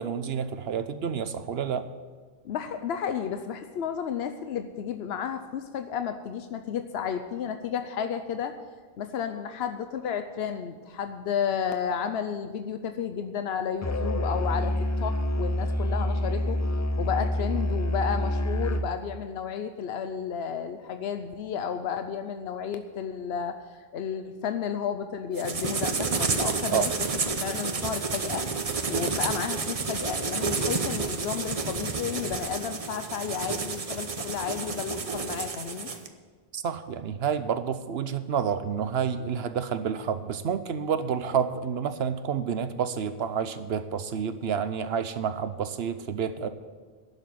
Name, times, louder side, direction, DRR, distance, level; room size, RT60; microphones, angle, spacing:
voice 1, 0.0-1.9 26.7-26.9 36.5-46.5, right 7 dB, 80° right, 11 dB, 1.0 m, -29 dB
voice 2, 2.4-8.6 9.0-14.7 15.0-16.6 17.0-28.5 28.9-35.9, left 7 dB, 85° left, 8 dB, 0.9 m, -32 dB
Musical instrument, 13.8-18.9, left 1 dB, 25° left, 0.4 m, -27 dB
sound 1, 25.4-36.1, right 4 dB, 40° right, 0.8 m, -30 dB
11.0 x 7.1 x 9.3 m, 1.5 s
omnidirectional pair, 1.0 m